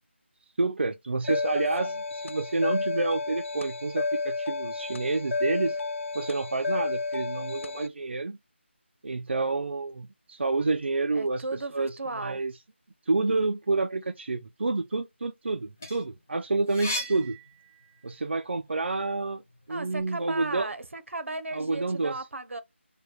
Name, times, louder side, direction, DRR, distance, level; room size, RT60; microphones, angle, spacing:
voice 1, 0.6-5.8 6.1-8.4 9.0-12.5 13.1-17.4 18.0-19.4 19.7-20.7 21.5-22.2, right 3 dB, 60° right, 0.4 m, -29 dB
sound 1, 1.2-7.9, left 3 dB, 85° left, 0.4 m, -31 dB
voice 2, 11.1-12.4 16.8-17.3 19.7-22.6, right 2 dB, 90° right, 0.9 m, -36 dB
sound 2, 15.5-18.2 18.7-20.1, left 1 dB, 10° left, 0.4 m, -38 dB
3.3 x 2.3 x 4.3 m
figure-of-eight pair, 180°, 7 cm